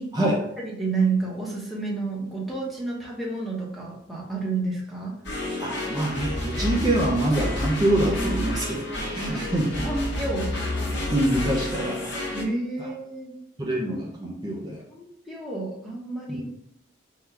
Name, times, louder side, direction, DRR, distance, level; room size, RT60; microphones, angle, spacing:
voice 1, 0.0-5.2 9.3-9.4 9.8-10.6 12.3-13.3 14.9-16.4, right 3 dB, ahead, -5 dB, 0.9 m, -30 dB
sound 1, 5.2-12.4, left 1 dB, 65° left, 0.9 m, -29 dB
voice 2, 5.6-9.7 11.1-12.2 12.8-12.9 13.6-14.8 16.3-16.4, right 1 dB, 20° right, -2 dB, 0.5 m, -25 dB
3.8 x 2.3 x 4.3 m, 0.74 s
head